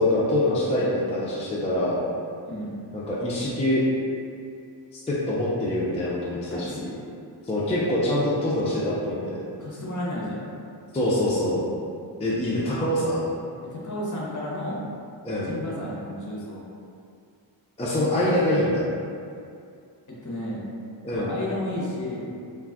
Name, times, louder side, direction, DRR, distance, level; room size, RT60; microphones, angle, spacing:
voice 1, 0.0-2.0 2.9-3.8 4.9-6.8 7.5-9.4 10.9-11.6 12.2-13.3 15.2-15.5 17.8-18.9 21.0-21.3, left 1 dB, 15° left, -7 dB, 0.4 m, -24 dB
voice 2, 6.5-6.9 9.6-10.4 13.7-14.8 15.4-16.6 20.1-20.7 21.1-22.3, left 1 dB, 40° left, -5 dB, 0.7 m, -32 dB
2.5 x 2.3 x 3.4 m, 2.4 s
wide cardioid pair, 90°, 45 cm